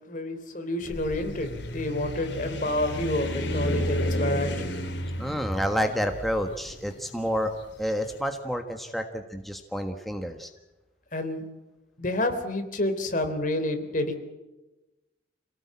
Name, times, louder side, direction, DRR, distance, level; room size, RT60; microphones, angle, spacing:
voice 1, 0.1-4.7 11.1-11.4 12.0-14.2, left 1 dB, 45° left, 7 dB, 3.4 m, -29 dB
sound 1, 0.8-8.0, equal, 80° left, 3.7 m, -32 dB
voice 2, 5.2-7.5 7.8-10.5, equal, ahead, 5 dB, 1.5 m, -29 dB
27.5 x 18.0 x 8.6 m, 1.1 s
head